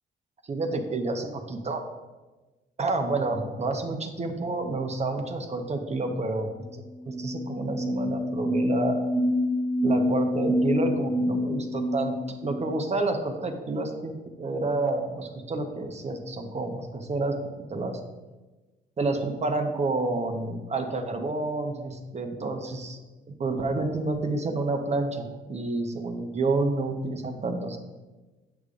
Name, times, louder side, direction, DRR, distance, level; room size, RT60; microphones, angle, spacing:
voice 1, 0.4-1.8 2.8-6.5 7.1-9.1 9.8-17.4 17.7-18.0 19.0-23.0 23.3-27.8, right 2 dB, 35° right, 5 dB, 0.9 m, -29 dB
sound 1, 6.7-6.8 7.0-12.7, left 1 dB, 75° right, 0.8 m, -27 dB
8.0 x 6.7 x 2.5 m, 1.2 s
cardioid pair, 90°, 20 cm